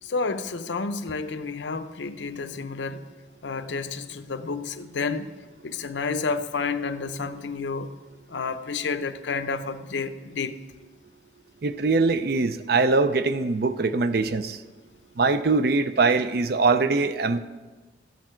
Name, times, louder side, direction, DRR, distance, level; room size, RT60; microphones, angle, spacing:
voice 1, 0.0-3.1 3.4-5.3 5.6-7.9 8.3-10.6, left 4 dB, 85° left, 0.6 m, -30 dB
voice 2, 11.6-14.6 15.2-17.4, right 3 dB, 55° right, 0.5 m, -22 dB
13.5 x 8.4 x 4.4 m
head